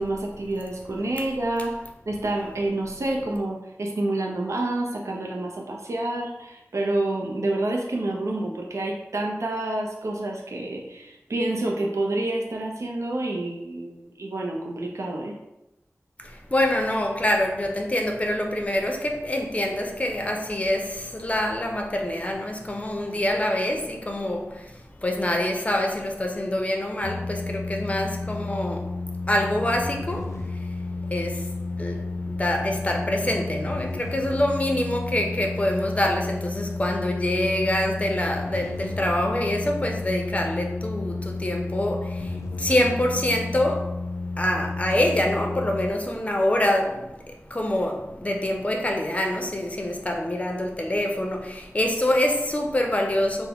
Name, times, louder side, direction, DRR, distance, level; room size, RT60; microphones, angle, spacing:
voice 1, 0.0-1.8 2.1-15.3, right 2 dB, 70° right, 0 dB, 0.4 m, -28 dB
voice 2, 16.2-29.0 29.3-44.1 44.4-53.5, left 1 dB, 25° left, 2 dB, 0.5 m, -26 dB
sound 1, 27.0-45.9, left 3 dB, 80° left, 0.3 m, -32 dB
3.4 x 2.0 x 3.5 m, 0.93 s
wide cardioid pair, 55°, 5 cm